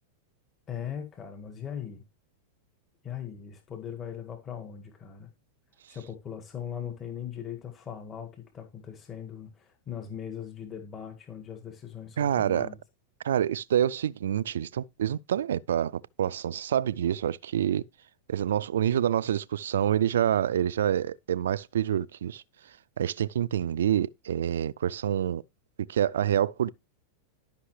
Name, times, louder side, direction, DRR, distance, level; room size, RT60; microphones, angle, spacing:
voice 1, 0.7-2.0 3.0-5.3 5.9-12.8, left 9 dB, 30° left, 1.8 m, -39 dB
voice 2, 12.2-12.7 13.2-17.8 18.3-22.4 23.0-25.4 25.9-26.7, right 10 dB, 80° right, 0.4 m, -27 dB
11.5 x 5.5 x 3.2 m
hypercardioid pair, 110°, 0 cm